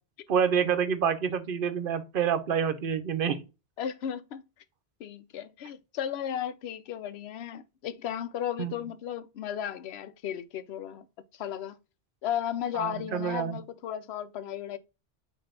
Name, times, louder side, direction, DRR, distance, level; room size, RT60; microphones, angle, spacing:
voice 1, 0.3-3.4 8.6-8.7 12.7-13.6, right 7 dB, 60° right, 0.9 m, -27 dB
voice 2, 3.8-4.4 5.0-11.1 11.3-11.8 12.2-14.8, left 10 dB, 85° left, 0.8 m, -35 dB
5.5 x 2.7 x 3.6 m
omnidirectional pair, 1.1 m